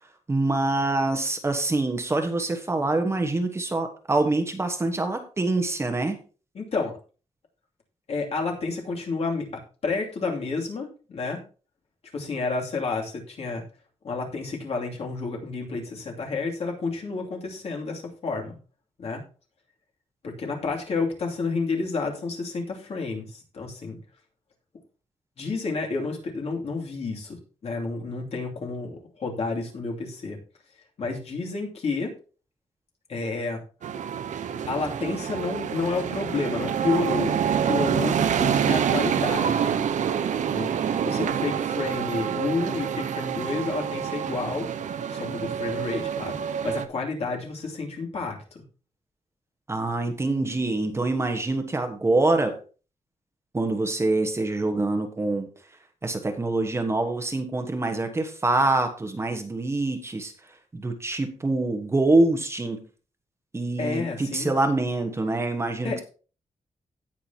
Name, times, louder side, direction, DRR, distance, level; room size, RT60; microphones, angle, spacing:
voice 1, 0.3-6.2 49.7-52.6 53.5-55.5 56.0-60.3 60.7-62.8 63.5-66.0, right 2 dB, 20° right, 6 dB, 1.2 m, -25 dB
voice 2, 6.5-7.0 8.1-11.4 12.1-13.6 14.0-18.6 19.0-19.2 20.2-24.0 25.4-30.4 31.0-32.1 33.1-33.6 34.7-39.8 40.4-40.7 41.0-44.7 45.1-48.6 63.8-64.6 65.8-66.0, left 3 dB, 55° left, 0 dB, 2.7 m, -30 dB
sound 1, 33.8-46.8, right 8 dB, 85° right, 0.8 m, -27 dB
17.5 x 6.1 x 2.9 m, 0.36 s
wide cardioid pair, 160°, 12 cm